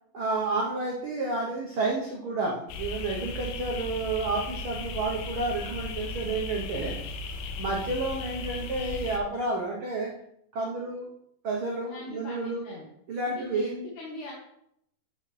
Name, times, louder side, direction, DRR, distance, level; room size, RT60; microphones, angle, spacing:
voice 1, 0.1-7.1 7.6-10.1 10.5-11.1 11.4-12.6 13.1-13.7, right 3 dB, 90° right, -3 dB, 1.1 m, -30 dB
sound 1, 2.7-9.2, left 3 dB, 85° left, 2.5 m, -36 dB
voice 2, 11.8-12.9 13.2-14.3, left 1 dB, 65° left, -4 dB, 3.0 m, -40 dB
12.0 x 4.9 x 3.3 m, 0.73 s
omnidirectional pair, 4.0 m